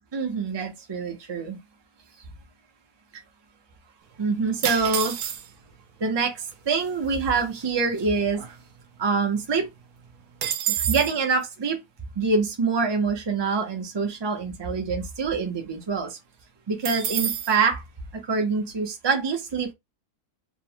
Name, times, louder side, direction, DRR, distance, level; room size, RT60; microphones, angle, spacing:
voice 1, 0.1-1.6 4.2-5.1 6.0-6.4 6.7-8.4 9.0-9.7 10.8-11.8 12.2-16.2 16.7-17.8 18.3-19.7, right 4 dB, 40° right, 0.4 m, -25 dB
sound 1, 4.6-5.7 6.5-6.6 6.8-7.1 7.6-9.0 9.4-9.5 9.8-11.2 16.8-17.6, right 9 dB, 80° right, 1.1 m, -29 dB
2.9 x 2.1 x 2.8 m
omnidirectional pair, 1.6 m